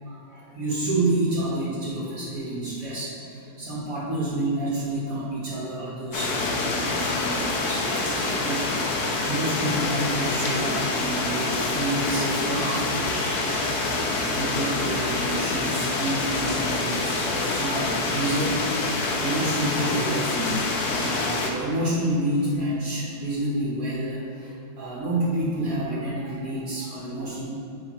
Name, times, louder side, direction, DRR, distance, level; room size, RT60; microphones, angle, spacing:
voice 1, 0.0-13.8 14.2-18.6 18.8-27.4, right 1 dB, 65° right, -8 dB, 1.6 m, -29 dB
sound 1, 6.1-21.5, left 3 dB, 80° left, 1.3 m, -26 dB
8.4 x 5.3 x 3.0 m, 2.5 s
omnidirectional pair, 1.6 m